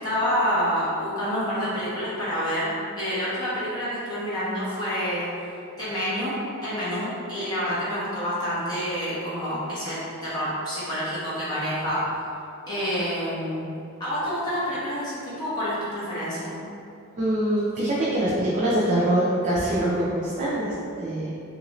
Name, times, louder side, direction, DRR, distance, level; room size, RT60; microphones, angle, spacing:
voice 1, 0.0-5.3 5.8-12.0 12.7-13.7 14.0-16.5, equal, 20° left, -12 dB, 1.0 m, -28 dB
voice 2, 17.2-21.3, right 1 dB, 35° right, -7 dB, 0.4 m, -24 dB
3.1 x 2.6 x 3.0 m, 2.6 s
head